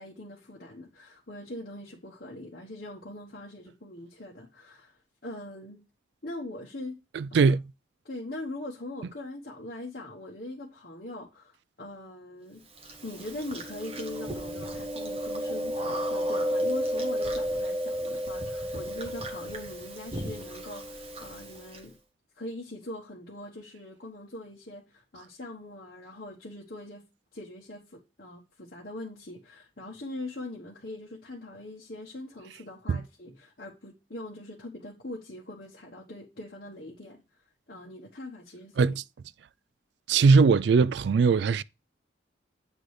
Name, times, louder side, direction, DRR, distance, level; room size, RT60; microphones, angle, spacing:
voice 1, 0.0-5.8 6.2-7.0 7.3-7.6 8.0-12.6 13.0-21.9 22.4-27.0 27.3-37.2 37.7-39.0, left 1 dB, 50° left, 1.3 m, -42 dB
voice 2, 7.1-7.6 32.9-33.0 38.8-39.0 40.1-41.6, right 5 dB, 60° right, 0.3 m, -20 dB
Chewing mastication, 12.8-21.8, equal, 30° right, 1.1 m, -32 dB
8.2 x 3.9 x 4.8 m
head